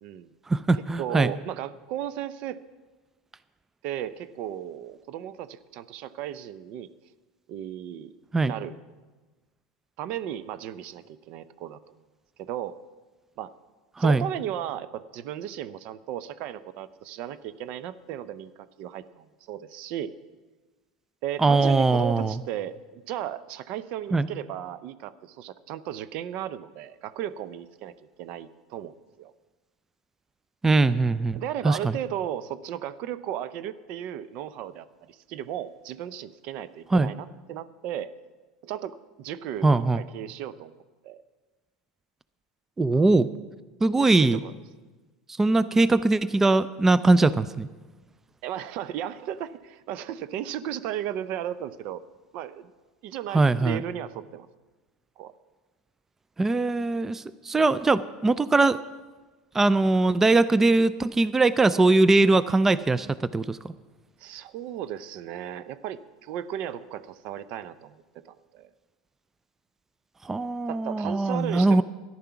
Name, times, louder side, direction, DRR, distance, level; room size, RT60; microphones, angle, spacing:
voice 1, 0.5-1.3 8.3-8.5 14.0-14.3 21.4-22.4 24.1-24.3 30.6-32.0 36.9-37.1 39.6-40.0 42.8-43.3 43.8-44.4 45.4-47.7 53.3-53.8 56.4-58.8 59.5-63.7 70.2-71.8, right 3 dB, 15° right, 16 dB, 0.4 m, -21 dB
voice 2, 1.0-2.6 3.8-6.9 7.5-8.2 8.4-8.7 10.0-11.8 12.4-12.8 13.4-13.5 14.0-20.1 21.2-29.3 31.3-38.1 38.6-40.7 41.0-41.2 44.2-44.5 48.4-52.0 52.3-52.7 53.0-54.5 55.2-55.3 64.2-68.0 68.2-68.7 70.7-71.8, right 11 dB, 60° right, 15 dB, 0.6 m, -35 dB
13.5 x 11.0 x 5.8 m, 1.3 s
hypercardioid pair, 85°, 2 cm